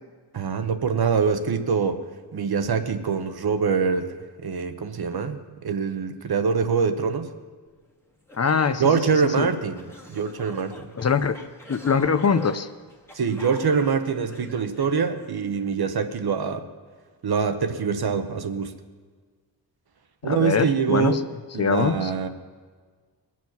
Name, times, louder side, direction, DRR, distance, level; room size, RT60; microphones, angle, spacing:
voice 1, 0.3-2.0 2.3-4.1 4.4-7.3 8.8-10.9 13.1-16.6 17.2-18.7 20.2-21.2 21.5-22.3, right 5 dB, 60° right, 9 dB, 1.1 m, -24 dB
sound 1, 7.9-8.0 8.3-15.4, equal, 5° left, 1.4 m, -44 dB
voice 2, 8.3-8.8 9.4-9.5 11.0-11.4 11.7-12.7 20.2-21.2 21.6-22.1, left 6 dB, 35° left, 11 dB, 0.6 m, -22 dB
21.5 x 7.5 x 6.0 m, 1.5 s
wide cardioid pair, 125°, 43 cm